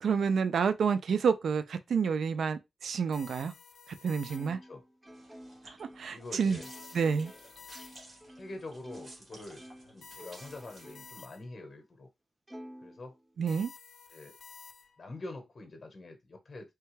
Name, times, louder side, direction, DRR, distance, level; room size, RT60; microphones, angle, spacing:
voice 1, 0.0-3.5 4.0-4.6 5.6-6.6 6.9-7.3 13.4-13.7, right 6 dB, 80° right, 0.3 m, -29 dB
sound 1, 3.1-4.8 6.6-8.3 10.0-11.7 13.5-15.1, left 6 dB, 85° left, 0.4 m, -52 dB
Plucked string instrument, 4.3-9.2 9.6-11.3 11.7-11.8 12.5-13.6, equal, 15° right, 0.5 m, -51 dB
sound 2, 5.1-11.3, right 1 dB, 40° right, 1.5 m, -54 dB
voice 2, 6.1-6.7 8.4-12.1 12.8-13.2 14.1-14.3 15.0-16.7, left 2 dB, 45° left, 0.9 m, -45 dB
3.3 x 2.2 x 3.1 m
cardioid pair, 85°, 0 cm